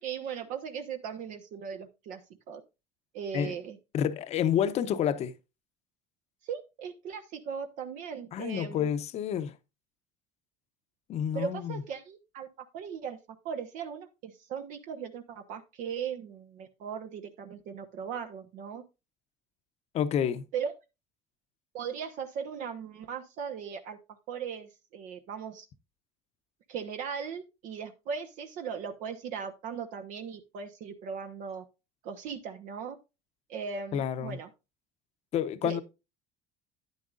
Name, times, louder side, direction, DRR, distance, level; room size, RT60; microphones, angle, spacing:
voice 1, 0.0-2.2 2.5-2.6 3.1-3.8 6.4-8.9 11.3-13.2 13.4-18.8 20.5-20.7 21.7-25.7 26.7-31.6 32.0-33.0 33.5-34.5 35.6-35.8, right 7 dB, 65° right, 1.0 m, -38 dB
voice 2, 3.9-5.3 8.3-9.5 11.1-11.8 19.9-20.4 33.9-34.4 35.3-35.8, left 9 dB, 50° left, 0.8 m, -29 dB
9.8 x 9.4 x 2.5 m
supercardioid pair, 95°, 14 cm